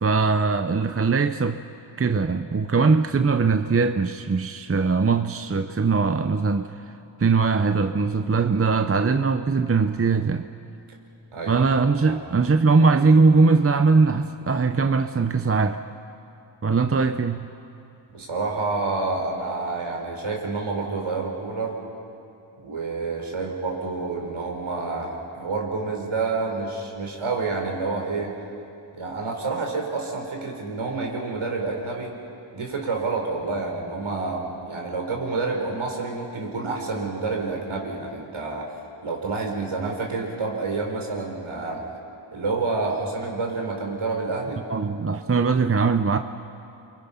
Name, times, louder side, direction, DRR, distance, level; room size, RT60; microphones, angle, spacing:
voice 1, 0.0-1.6 2.0-6.8 7.2-10.5 11.5-15.8 16.6-17.5 44.7-46.2, right 4 dB, 30° right, 8 dB, 0.7 m, -21 dB
voice 2, 11.3-11.6 12.0-12.1 18.1-21.8 22.6-28.3 28.9-32.1 32.5-41.8 42.3-44.6, right 3 dB, 85° right, 1 dB, 4.4 m, -28 dB
30.0 x 23.5 x 5.7 m, 2.7 s
wide cardioid pair, 80°, 47 cm